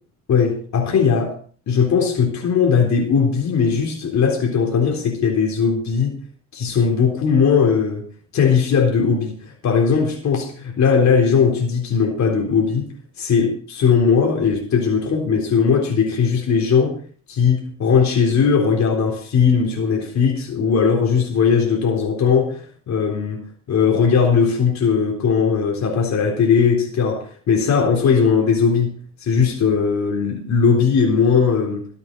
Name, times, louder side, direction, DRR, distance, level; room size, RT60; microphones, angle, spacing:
voice 1, 0.3-1.4 1.7-6.2 6.5-8.1 8.3-12.9 13.2-17.0 17.3-31.9, left 6 dB, 65° left, 3.9 m, -18 dB
23.5 x 8.8 x 4.1 m
cardioid pair, 90°, 30 cm